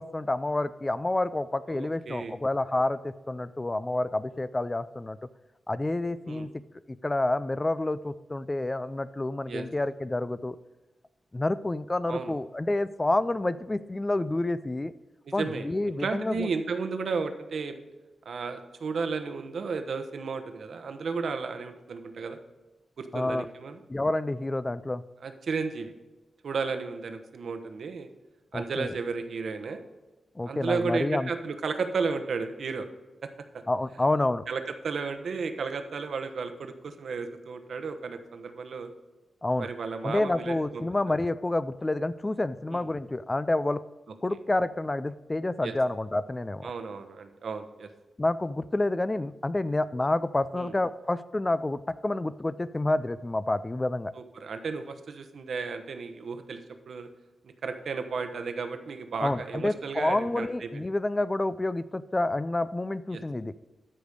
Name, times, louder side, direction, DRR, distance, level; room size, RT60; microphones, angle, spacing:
voice 1, 0.0-5.2 5.7-6.5 7.0-10.6 11.3-14.9 15.3-16.5 23.1-23.5 23.9-25.0 28.5-28.9 30.4-31.3 33.7-34.4 39.4-39.7 40.0-43.8 44.2-46.7 48.2-54.1 59.2-63.5, left 2 dB, 20° left, 15 dB, 0.3 m, -28 dB
voice 2, 1.7-2.4 6.3-6.5 9.5-9.7 12.1-12.3 15.3-15.7 16.0-17.8 18.2-22.4 23.0-23.8 25.2-25.9 26.4-28.1 28.5-29.8 30.5-32.9 33.5-33.6 34.5-38.9 39.6-40.8 42.7-42.9 44.3-44.4 45.6-45.7 46.6-47.9 50.5-50.7 54.1-56.6 56.9-57.1 57.6-60.8 63.1-63.2, right 4 dB, 70° right, 8 dB, 1.0 m, -33 dB
13.0 x 5.1 x 5.2 m, 1.1 s
wide cardioid pair, 125°, 0 cm